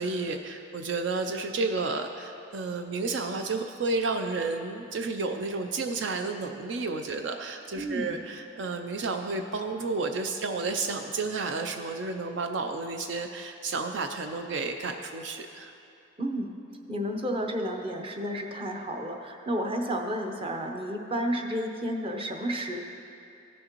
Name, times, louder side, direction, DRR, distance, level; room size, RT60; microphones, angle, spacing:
voice 1, 0.0-15.7, right 3 dB, 70° right, 5 dB, 0.5 m, -31 dB
voice 2, 7.7-8.2 16.2-16.6 16.9-22.8, equal, 30° right, 2 dB, 0.7 m, -31 dB
15.5 x 6.3 x 3.0 m, 2.6 s
head